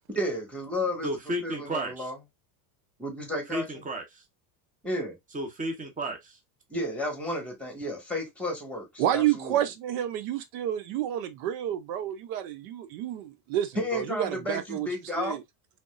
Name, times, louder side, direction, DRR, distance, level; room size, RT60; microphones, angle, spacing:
voice 1, 0.1-1.1 1.4-2.2 3.0-3.8 4.8-5.2 6.7-9.6 13.8-15.4, left 1 dB, 5° left, 1.8 m, -32 dB
voice 2, 1.0-2.1 3.5-4.2 5.3-6.4, right 1 dB, 15° right, 1.1 m, -33 dB
voice 3, 9.0-14.9 15.2-15.4, right 11 dB, 75° right, 0.8 m, -29 dB
3.9 x 3.4 x 2.5 m
supercardioid pair, 115°, 49 cm